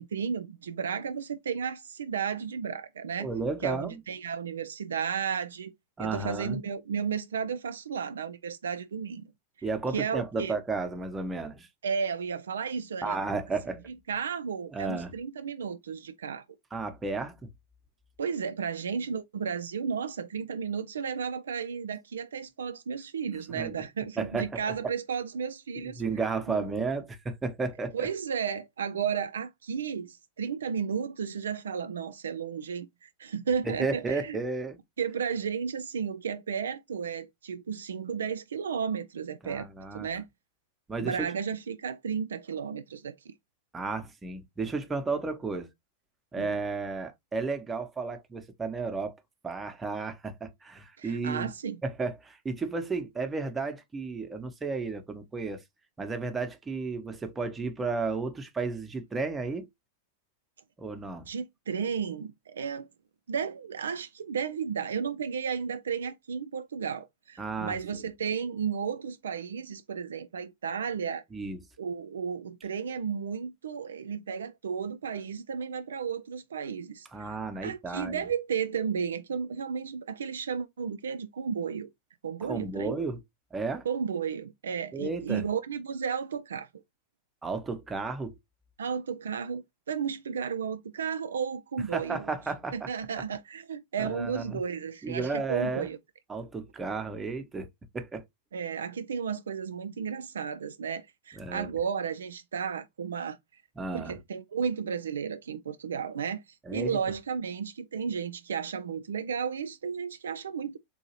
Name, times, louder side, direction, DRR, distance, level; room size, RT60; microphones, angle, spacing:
voice 1, 0.0-3.3 3.6-5.7 6.0-9.2 9.9-10.6 11.8-13.2 14.1-16.4 18.2-26.0 26.5-26.7 27.9-34.4 35.0-39.7 39.9-40.3 41.0-43.3 46.4-46.6 51.0-51.8 61.3-62.9 63.3-71.2 71.8-81.9 82.2-83.0 83.9-86.7 88.8-92.2 92.7-96.0 98.5-103.4 103.9-110.8, right 6 dB, 65° right, 0.3 m, -33 dB
voice 2, 3.2-4.0 6.0-6.6 9.6-11.7 13.0-13.8 14.7-15.1 16.7-17.4 23.5-23.8 24.2-24.5 25.8-28.1 33.6-34.8 39.4-40.1 40.9-41.3 43.7-45.7 46.3-49.2 49.4-51.5 51.8-55.6 56.0-59.7 60.8-61.3 67.4-68.0 71.3-71.6 77.1-78.3 82.5-83.2 83.5-83.9 84.9-85.4 87.4-88.3 91.9-92.9 94.0-94.6 95.0-95.9 96.3-97.7 97.9-98.2 101.4-101.7 103.8-104.2 106.7-107.0, right 4 dB, 15° right, 0.7 m, -33 dB
3.8 x 2.7 x 2.9 m
figure-of-eight pair, 90°, 0 cm